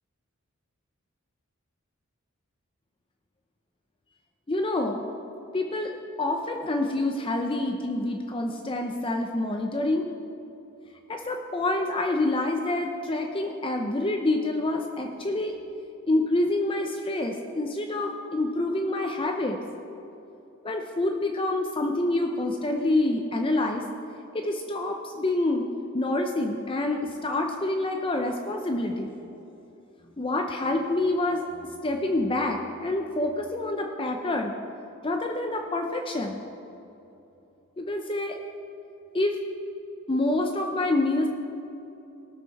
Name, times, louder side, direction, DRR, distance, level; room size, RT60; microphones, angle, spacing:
voice 1, 4.5-5.0 5.5-5.9 6.2-10.1 11.1-15.5 16.1-19.6 20.6-23.8 24.3-25.6 25.9-29.2 30.2-34.5 35.0-36.4 37.8-38.4 39.1-39.4 40.1-41.3, left 2 dB, 25° left, 3 dB, 0.6 m, -27 dB
18.5 x 6.6 x 4.2 m, 2.8 s
head